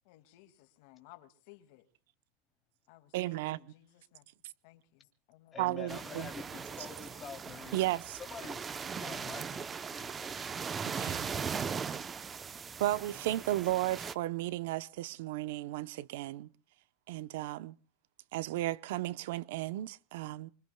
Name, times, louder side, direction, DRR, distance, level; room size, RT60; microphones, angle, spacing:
voice 1, 0.1-1.9 2.9-4.2 4.6-5.6, left 16 dB, 55° left, 2.1 m, -59 dB
voice 2, 3.1-3.6 5.6-6.3 7.7-8.2 10.8-11.3 12.8-16.5 17.1-17.7 18.3-20.5, right 16 dB, 65° right, 0.7 m, -34 dB
voice 3, 5.5-7.8 8.2-8.6 9.0-10.4, left 6 dB, 20° left, 2.9 m, -47 dB
sound 1, 5.9-14.1, right 6 dB, 15° right, 0.7 m, -39 dB
26.0 x 24.5 x 2.3 m
supercardioid pair, 160°, 0 cm